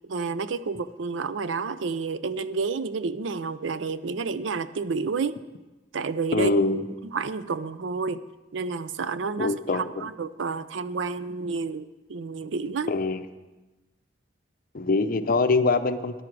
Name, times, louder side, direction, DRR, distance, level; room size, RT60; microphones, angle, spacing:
voice 1, 0.0-5.4 5.9-6.5 7.1-8.2 8.5-12.9, right 4 dB, 75° right, 14 dB, 0.5 m, -30 dB
voice 2, 6.3-6.9 9.4-10.1 12.9-13.2 14.7-16.2, left 3 dB, 50° left, 10 dB, 0.6 m, -24 dB
13.5 x 11.0 x 4.7 m, 1.1 s
head